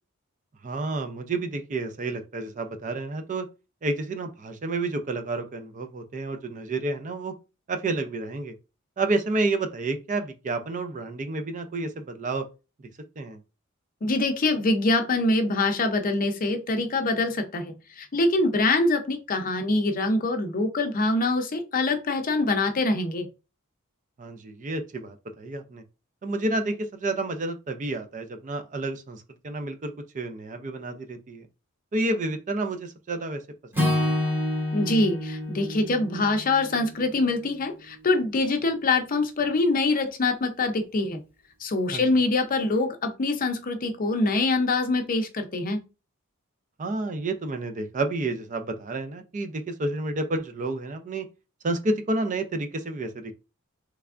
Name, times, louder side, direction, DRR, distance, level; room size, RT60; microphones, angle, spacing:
voice 1, 0.6-3.5 3.8-7.3 7.7-8.5 9.0-12.5 13.2-13.4 24.2-25.8 26.2-31.5 31.9-33.4 33.8-34.1 41.9-42.0 46.8-51.3 51.6-53.3, right 2 dB, 35° right, 0.4 m, -30 dB
voice 2, 14.0-23.3 34.7-41.2 41.6-45.8, left 2 dB, 40° left, 0.6 m, -24 dB
Acoustic guitar / Strum, 33.7-38.0, left 1 dB, 10° right, 1.0 m, -29 dB
3.3 x 3.3 x 2.4 m
head